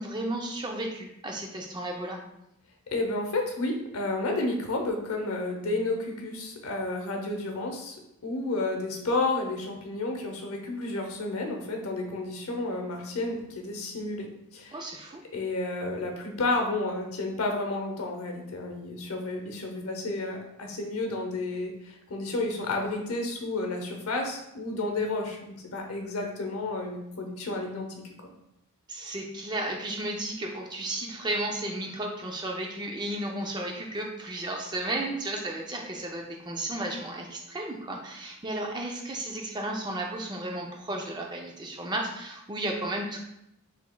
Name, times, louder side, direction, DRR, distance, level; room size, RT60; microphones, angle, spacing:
voice 1, 0.0-2.2 14.7-15.2 28.9-43.2, right 1 dB, 20° right, 1 dB, 0.4 m, -33 dB
voice 2, 2.9-8.0 8.2-14.8 15.3-28.3, left 2 dB, 85° left, 2 dB, 0.8 m, -31 dB
5.0 x 3.3 x 2.2 m, 0.82 s
head